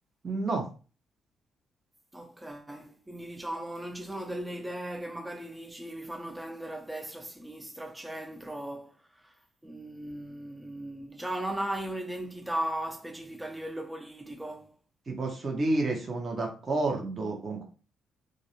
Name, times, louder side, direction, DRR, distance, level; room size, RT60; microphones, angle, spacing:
voice 1, 0.2-0.6 15.1-17.6, right 2 dB, 35° right, 0.7 m, -30 dB
voice 2, 2.1-8.9 9.2-9.3 9.6-14.7, right 1 dB, 10° right, 0.3 m, -37 dB
2.4 x 2.0 x 2.8 m
cardioid pair, 90°, 0 cm